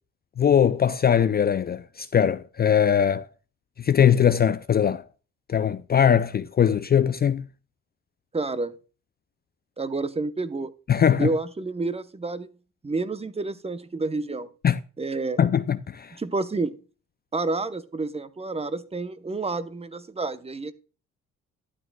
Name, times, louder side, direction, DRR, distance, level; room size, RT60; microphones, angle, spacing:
voice 1, 0.4-3.3 3.8-5.0 5.5-7.4 10.9-11.3 14.6-14.8 15.4-16.1, left 8 dB, 35° left, 0.4 m, -21 dB
voice 2, 8.3-8.7 9.8-10.7 11.2-12.5 12.8-14.5 15.0-15.4 16.2-16.8 17.3-20.7, right 3 dB, 20° right, 0.8 m, -29 dB
12.5 x 8.7 x 2.3 m
cardioid pair, 90°, 30 cm